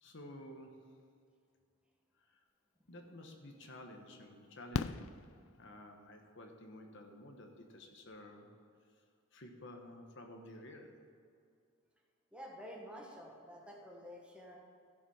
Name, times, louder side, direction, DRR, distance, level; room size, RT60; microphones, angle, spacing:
voice 1, 0.0-0.9 2.2-2.4 2.9-5.2 5.6-8.5 8.9-9.0 9.3-11.0, left 1 dB, 60° left, 3 dB, 1.1 m, -52 dB
Fireworks, 3.1-3.2 4.7-6.1 7.8-7.9 8.1-8.2, left 6 dB, 80° left, 0.4 m, -39 dB
voice 2, 12.3-14.6, equal, 5° right, -1 dB, 1.3 m, -50 dB
15.0 x 5.4 x 5.6 m, 2.3 s
head